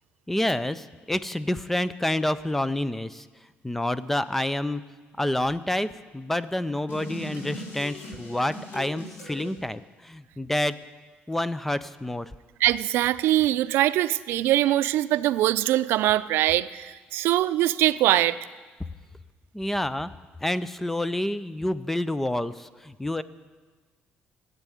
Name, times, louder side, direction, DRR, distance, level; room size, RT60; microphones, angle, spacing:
voice 1, 0.3-3.3 3.6-4.8 5.2-10.8 11.3-12.3 19.5-20.1 20.4-23.2, left 1 dB, 5° left, 15 dB, 0.4 m, -28 dB
sound 1, 6.9-9.5, left 1 dB, 75° left, 4.0 m, -39 dB
voice 2, 12.6-18.4, right 14 dB, 80° right, 14 dB, 0.4 m, -22 dB
14.5 x 8.2 x 9.2 m, 1.4 s
cardioid pair, 150°, 4 cm